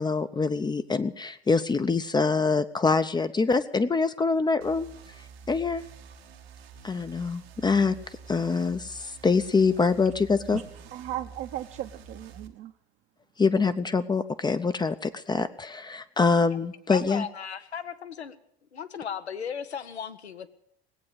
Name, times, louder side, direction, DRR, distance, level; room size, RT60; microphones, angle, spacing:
voice 1, 0.0-4.9 5.5-5.8 6.8-7.9 8.3-10.6 13.4-17.2, left 4 dB, 15° left, 0.6 m, -25 dB
sound 1, 4.6-12.5, right 5 dB, 70° right, 1.5 m, -48 dB
voice 2, 10.5-12.7, right 13 dB, 45° right, 0.9 m, -37 dB
voice 3, 16.9-18.4 18.7-20.5, left 7 dB, 85° left, 0.9 m, -36 dB
18.5 x 8.6 x 8.1 m
figure-of-eight pair, 75°, 32 cm